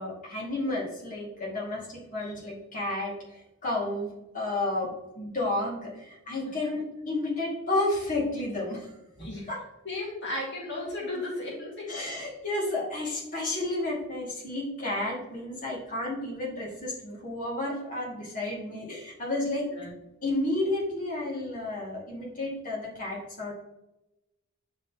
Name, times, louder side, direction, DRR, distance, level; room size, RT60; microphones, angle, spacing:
voice 1, 0.0-9.6 11.9-19.7 20.2-23.5, left 2 dB, 40° left, -5 dB, 2.2 m, -32 dB
voice 2, 9.9-12.0 19.7-19.9, left 2 dB, 60° left, -4 dB, 2.1 m, -35 dB
9.3 x 3.9 x 2.9 m, 0.95 s
head